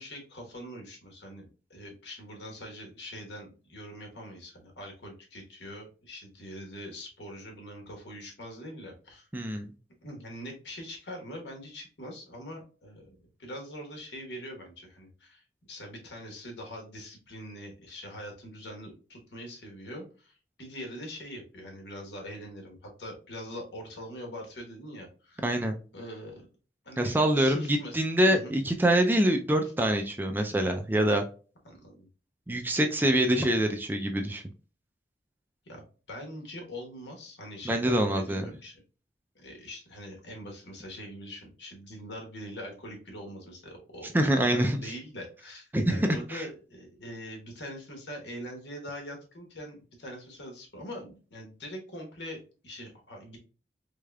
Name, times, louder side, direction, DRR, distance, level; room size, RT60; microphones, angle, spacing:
voice 1, 0.0-9.3 10.0-25.5 25.9-26.5 26.8-28.0 28.3-28.5 31.6-32.1 35.6-38.8 39.3-53.4, equal, 75° left, 1 dB, 1.2 m, -43 dB
voice 2, 9.3-9.7 25.4-25.7 27.0-31.2 32.5-34.4 37.7-38.4 44.1-44.8 45.7-46.4, right 1 dB, 10° right, 4 dB, 0.3 m, -25 dB
3.6 x 3.3 x 2.3 m, 0.36 s
head